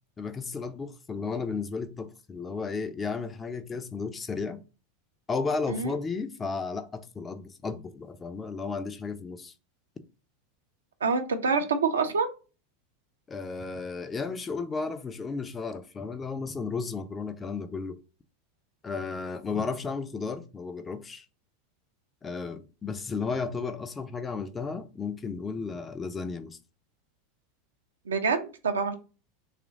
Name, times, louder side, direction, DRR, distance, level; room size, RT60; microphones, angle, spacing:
voice 1, 0.2-4.6 5.3-9.5 13.3-18.0 18.8-21.3 22.2-26.6, left 4 dB, 20° left, 0.4 m, -34 dB
voice 2, 11.0-12.3 28.1-28.9, right 5 dB, 70° right, 0.5 m, -26 dB
3.0 x 2.5 x 3.8 m
figure-of-eight pair, 85°, 0 cm